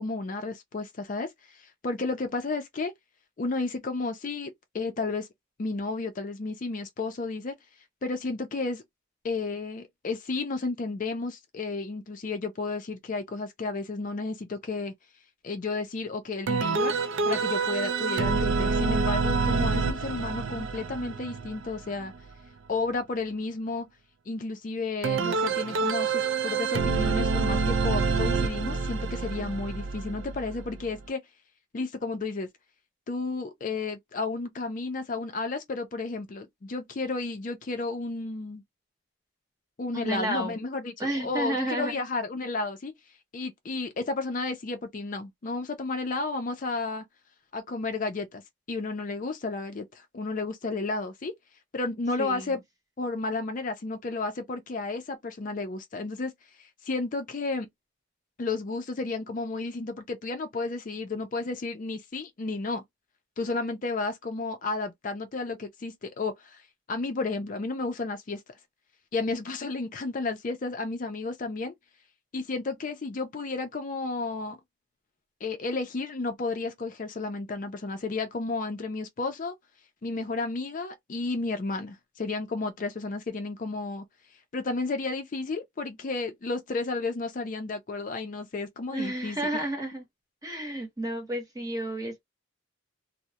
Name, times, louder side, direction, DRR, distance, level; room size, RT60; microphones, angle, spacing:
voice 1, 0.0-2.9 3.4-4.5 4.7-5.3 5.6-7.5 8.0-8.8 9.2-14.9 15.4-16.9 17.3-22.1 22.7-23.9 24.3-31.2 31.7-32.5 33.1-38.6 39.8-42.9 43.3-47.0 47.5-48.4 48.7-51.3 51.7-52.6 53.0-56.3 56.6-57.7 58.4-62.8 63.4-66.6 66.9-68.4 69.1-71.7 72.3-74.6 75.4-79.5 80.0-84.0 84.5-89.4, left 3 dB, 40° left, 0.4 m, -32 dB
sound 1, 16.5-22.3 25.0-31.0, right 4 dB, 70° right, 0.4 m, -27 dB
voice 2, 39.9-40.6 41.0-42.0 52.2-52.5 88.9-90.0 90.4-92.2, right 1 dB, 15° right, 0.8 m, -31 dB
2.2 x 2.0 x 2.8 m
head